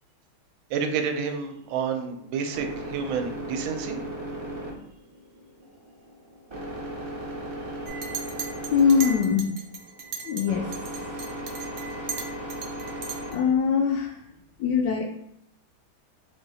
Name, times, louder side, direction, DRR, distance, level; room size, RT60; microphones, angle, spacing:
voice 1, 0.7-4.0, right 6 dB, 80° right, 5 dB, 1.4 m, -29 dB
sound 1, 1.5-13.9, right 1 dB, 45° right, 0.3 m, -37 dB
Chink clink, 7.9-10.5 10.7-13.4, right 5 dB, 65° right, 1.2 m, -37 dB
voice 2, 8.7-9.5 10.2-10.7 13.3-14.2 14.6-15.1, left 6 dB, 75° left, 2 dB, 1.0 m, -22 dB
4.4 x 2.7 x 4.0 m, 0.74 s
omnidirectional pair, 2.2 m